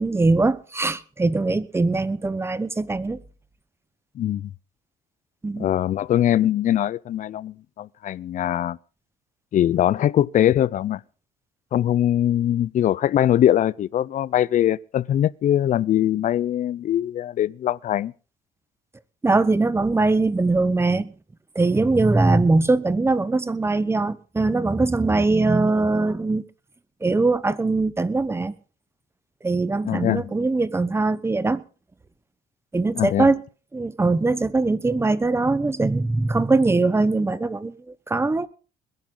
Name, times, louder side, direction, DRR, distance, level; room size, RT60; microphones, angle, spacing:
voice 1, 0.0-3.2 5.4-5.7 19.2-21.1 21.5-26.4 27.0-28.5 29.4-31.6 32.7-33.4 33.7-38.5, right 3 dB, 15° right, 1.0 m, -21 dB
voice 2, 4.2-4.5 5.6-8.8 9.5-11.0 11.7-18.1 29.8-30.3 32.9-33.3, left 11 dB, 50° left, 0.6 m, -22 dB
21.0 x 11.0 x 3.9 m
cardioid pair, 110°, 17 cm